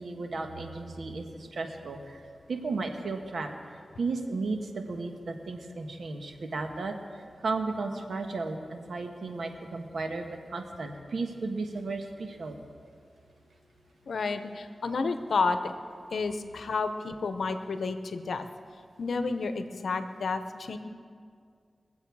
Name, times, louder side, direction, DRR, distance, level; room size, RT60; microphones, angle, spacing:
voice 1, 0.0-3.5 4.0-6.9 7.4-12.6, right 3 dB, 80° right, 4 dB, 1.3 m, -34 dB
voice 2, 14.1-15.6 16.1-18.5 19.0-20.8, left 4 dB, 85° left, 9 dB, 0.8 m, -30 dB
22.5 x 7.8 x 4.7 m, 2.2 s
cardioid pair, 40°, 0 cm